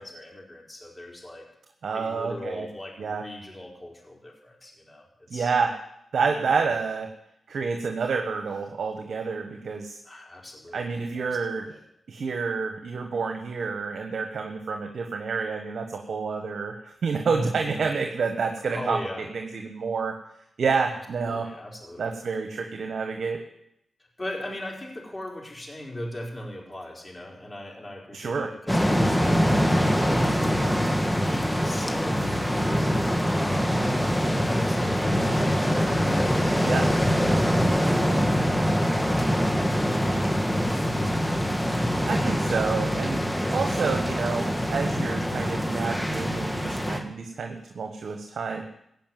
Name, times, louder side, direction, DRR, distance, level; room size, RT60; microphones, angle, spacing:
voice 1, 0.0-1.5 1.9-5.0 5.3-5.5 6.4-6.7 10.0-11.8 17.2-17.9 18.6-19.3 20.9-21.0 21.2-22.1 24.2-30.8 31.3-34.0 34.4-38.7 40.4-42.1, left 1 dB, 30° left, -1 dB, 4.3 m, -39 dB
voice 2, 1.8-2.7 3.0-3.2 5.3-5.7 6.1-7.1 7.5-10.0 10.7-11.6 12.1-19.0 19.3-20.1 20.6-21.5 22.0-23.4 28.1-28.5 36.6-36.9 42.1-43.2 43.5-48.6, right 5 dB, 75° right, 4 dB, 1.3 m, -28 dB
sound 1, 28.7-47.0, equal, 5° left, 1.9 m, -24 dB
16.0 x 5.7 x 9.2 m, 0.78 s
cardioid pair, 50°, 0 cm